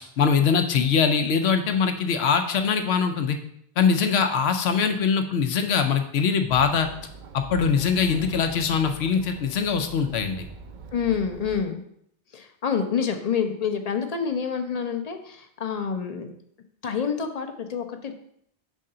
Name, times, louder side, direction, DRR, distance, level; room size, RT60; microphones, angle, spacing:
voice 1, 0.0-3.4 3.8-6.9 7.3-10.5, left 6 dB, 85° left, 6 dB, 0.8 m, -22 dB
Chatter, 6.5-11.6, right 4 dB, 55° right, 0.6 m, -43 dB
voice 2, 10.9-11.8 12.3-16.3 16.8-18.1, left 6 dB, 45° left, 6 dB, 0.6 m, -27 dB
5.4 x 3.8 x 5.4 m, 0.70 s
omnidirectional pair, 1.0 m